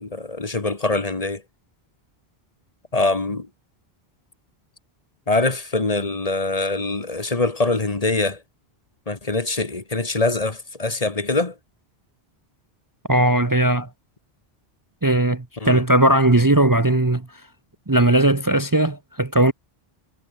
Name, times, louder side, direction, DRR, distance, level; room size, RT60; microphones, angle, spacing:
voice 1, 0.0-1.4 2.9-3.5 5.3-8.4 9.1-11.6 15.6-15.8, left 2 dB, 35° left, 1.6 m, -23 dB
voice 2, 13.1-13.9 15.0-17.3 17.9-19.5, right 1 dB, 20° right, 0.9 m, -18 dB
omnidirectional pair, 1.1 m